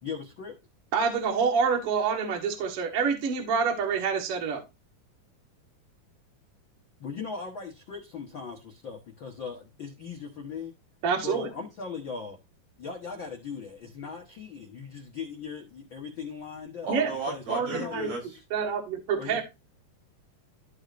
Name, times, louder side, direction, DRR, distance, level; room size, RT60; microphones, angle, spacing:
voice 1, 0.0-0.5 7.0-10.7 11.2-12.4 12.8-16.9 17.3-18.2 19.2-19.4, left 5 dB, 55° left, 1.3 m, -39 dB
voice 2, 0.9-4.6 11.0-11.5 16.9-17.1 17.5-18.1 18.5-19.4, right 6 dB, 50° right, 2.1 m, -27 dB
voice 3, 16.8-18.4, right 3 dB, 70° right, 7.7 m, -34 dB
14.0 x 4.9 x 2.6 m
omnidirectional pair, 4.3 m